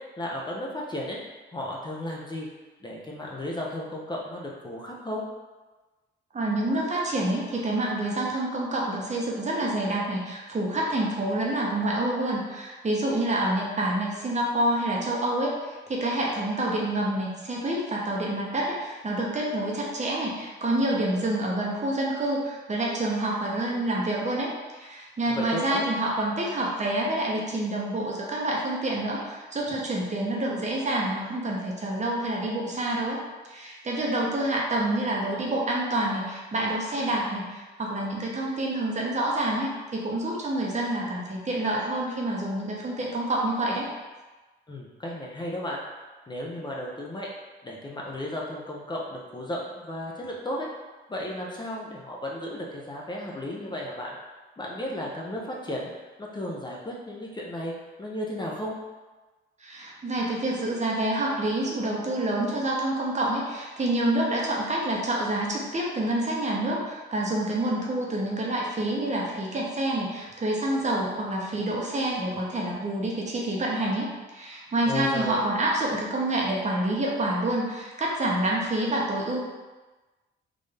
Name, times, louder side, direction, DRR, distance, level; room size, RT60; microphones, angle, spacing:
voice 1, 0.2-1.2 1.5-2.5 2.8-5.2 25.3-25.9 44.7-45.8 46.3-47.3 47.6-50.7 51.1-54.2 54.6-55.9 56.2-57.7 58.0-58.8 74.9-75.4, left 1 dB, 20° left, -3 dB, 0.7 m, -34 dB
voice 2, 6.3-33.2 33.5-43.9 59.6-79.5, right 1 dB, 35° right, -3 dB, 0.9 m, -27 dB
3.7 x 2.6 x 3.4 m, 1.2 s
cardioid pair, 75°, 20 cm